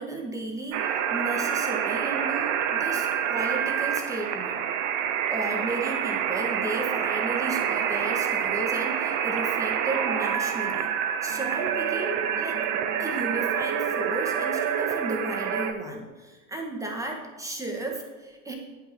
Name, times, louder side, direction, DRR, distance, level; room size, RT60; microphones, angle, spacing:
voice 1, 0.0-4.6 5.3-10.9 11.2-12.6 13.0-18.6, right 2 dB, 5° right, 1 dB, 1.3 m, -34 dB
sound 1, 0.7-15.7, right 8 dB, 45° right, 0.8 m, -27 dB
10.5 x 5.6 x 2.9 m, 1.2 s
figure-of-eight pair, 80°, 47 cm